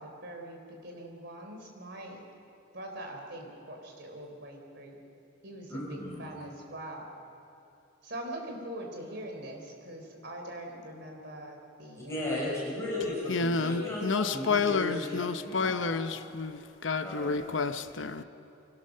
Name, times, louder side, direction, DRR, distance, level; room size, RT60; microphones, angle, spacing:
voice 1, 0.0-2.2 2.7-5.0 5.4-5.7 6.2-7.1 8.0-12.2, right 1 dB, 60° right, 2 dB, 3.8 m, -42 dB
voice 2, 5.7-6.4 12.0-16.3 17.0-17.8, left 1 dB, 15° left, -6 dB, 6.7 m, -36 dB
voice 3, 13.3-18.2, left 4 dB, 70° left, 10 dB, 0.8 m, -30 dB
24.0 x 18.0 x 6.7 m, 3.0 s
head